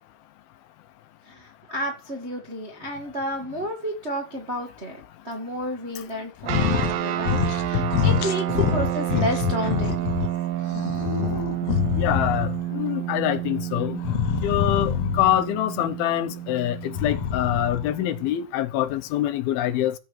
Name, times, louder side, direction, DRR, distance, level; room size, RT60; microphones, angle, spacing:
voice 1, 1.3-5.0 5.2-10.1, equal, 40° right, 0.9 m, -31 dB
sound 1, 6.4-7.0 7.2-7.6 7.9-10.3 10.7-12.6 14.0-15.4 16.8-17.9, left 9 dB, 65° left, 1.6 m, -25 dB
sound 2, 6.5-18.3, right 13 dB, 75° right, 2.5 m, -30 dB
voice 2, 12.0-14.0 14.4-19.9, left 12 dB, 80° left, 2.8 m, -25 dB
14.0 x 5.6 x 7.9 m
omnidirectional pair, 4.4 m